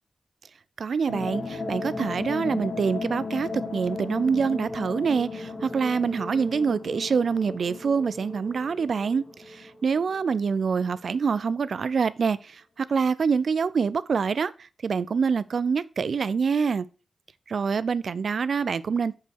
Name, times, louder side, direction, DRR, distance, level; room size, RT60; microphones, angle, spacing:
voice 1, 0.8-16.8 17.5-19.1, right 5 dB, 70° right, 0.4 m, -26 dB
sound 1, 1.1-10.5, left 3 dB, 60° left, 2.6 m, -35 dB
6.7 x 5.2 x 4.6 m
supercardioid pair, 40°, 0 cm